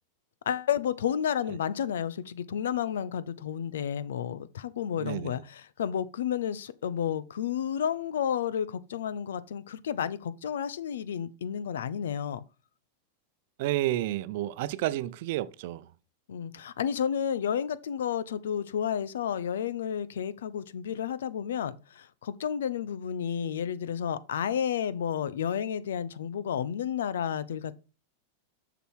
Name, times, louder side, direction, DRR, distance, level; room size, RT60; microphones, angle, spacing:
voice 1, 0.5-12.4 16.3-27.8, left 8 dB, 85° left, 0.7 m, -31 dB
voice 2, 5.0-5.4 13.6-15.9, right 15 dB, 65° right, 0.6 m, -31 dB
7.0 x 6.1 x 4.6 m
hypercardioid pair, 125°, 0 cm